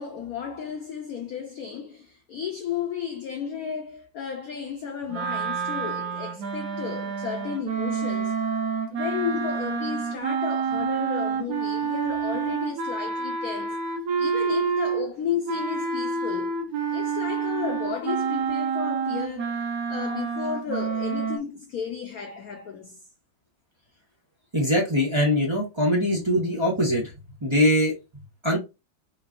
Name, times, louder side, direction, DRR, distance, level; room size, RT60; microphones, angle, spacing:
voice 1, 0.0-8.4 8.9-13.8 14.2-16.6 16.9-19.6 19.9-23.0, left 7 dB, 65° left, 0.9 m, -33 dB
sound 1, 5.1-15.1 15.5-21.4, right 5 dB, 60° right, 1.4 m, -28 dB
voice 2, 24.5-27.1 27.4-27.9 28.4-28.6, equal, 15° right, 1.2 m, -22 dB
4.2 x 3.7 x 2.5 m
omnidirectional pair, 2.1 m